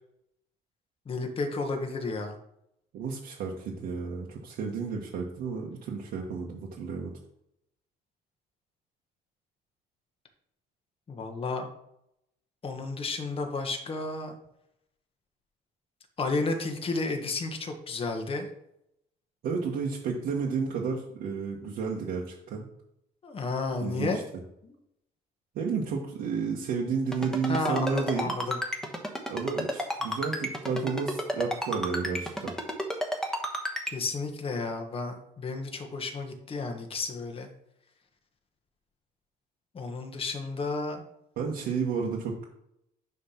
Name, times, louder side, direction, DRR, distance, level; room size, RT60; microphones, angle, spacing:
voice 1, 1.0-2.4 11.1-11.7 12.6-14.3 16.2-18.5 23.2-24.2 24.6-24.7 27.5-28.6 33.9-37.5 39.7-41.0, left 3 dB, 35° left, 4 dB, 1.4 m, -32 dB
voice 2, 2.9-7.1 19.4-22.6 23.8-24.2 25.5-28.3 29.3-32.5 41.4-42.5, right 5 dB, 70° right, -3 dB, 1.3 m, -32 dB
Ringtone, 27.1-33.9, equal, 5° left, 1.3 m, -31 dB
9.4 x 3.3 x 5.8 m, 0.79 s
cardioid pair, 110°, 17 cm